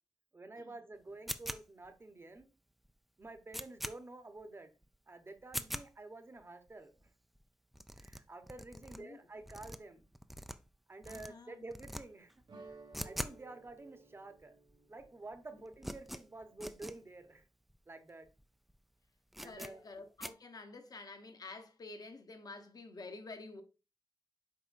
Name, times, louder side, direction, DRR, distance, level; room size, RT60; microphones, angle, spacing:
voice 1, 0.3-2.5 3.2-4.7 5.1-7.1 8.0-10.0 10.9-12.3 13.0-14.6 14.9-17.4 17.9-18.3 19.4-19.8, right 2 dB, 30° right, 0.9 m, -50 dB
sound 1, 1.3-1.9 2.4-2.5 2.8-2.9 3.2-4.0 4.4-4.5 4.8-5.0 5.4-5.9 6.4-6.5 6.7-6.8 7.0-7.1 7.4-7.5 7.7-9.0 9.4-10.8 11.0-11.3 11.7-12.0 12.3-13.4 13.7-13.8 14.4-14.5 14.7-15.1 15.3-17.0 17.4-17.5 17.7-17.8 18.3-18.4 18.7-18.8 19.3-19.7 20.2-20.3, equal, ahead, 0.4 m, -43 dB
voice 2, 8.7-9.2 11.1-11.6 19.4-23.6, left 3 dB, 55° left, 1.0 m, -50 dB
sound 2, 12.5-17.3, right 3 dB, 85° right, 1.5 m, -58 dB
7.5 x 4.9 x 2.5 m
wide cardioid pair, 140°, 8 cm